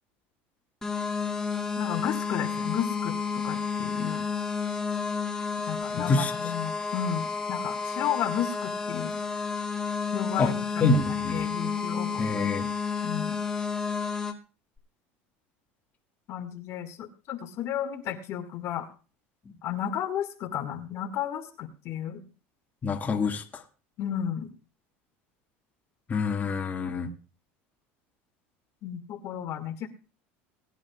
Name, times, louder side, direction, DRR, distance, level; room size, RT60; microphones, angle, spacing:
sound 1, 0.8-14.3, left 5 dB, 10° left, 2.2 m, -31 dB
voice 1, 1.8-4.3 5.7-9.1 10.1-11.0 11.3-12.4 13.0-13.4 16.3-18.9 19.6-22.2 24.0-24.5 28.8-29.9, left 10 dB, 55° left, 4 dB, 1.9 m, -33 dB
voice 2, 6.0-6.3 10.4-10.5 10.8-11.5 12.2-12.7 22.8-23.6 26.1-27.1, left 3 dB, 25° left, 2 dB, 1.9 m, -26 dB
20.5 x 10.5 x 2.4 m, 0.35 s
supercardioid pair, 105°, 6 cm